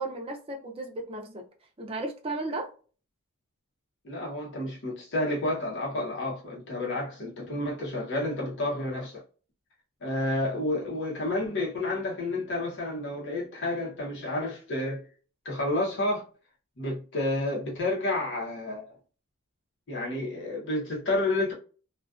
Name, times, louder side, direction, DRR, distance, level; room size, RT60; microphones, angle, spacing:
voice 1, 0.0-1.4 1.8-2.7, right 2 dB, 25° right, 0.5 m, -34 dB
voice 2, 4.0-9.2 10.0-15.0 15.4-16.2 16.8-18.9 19.9-21.5, left 2 dB, 55° left, 0.8 m, -30 dB
2.3 x 2.3 x 2.4 m
head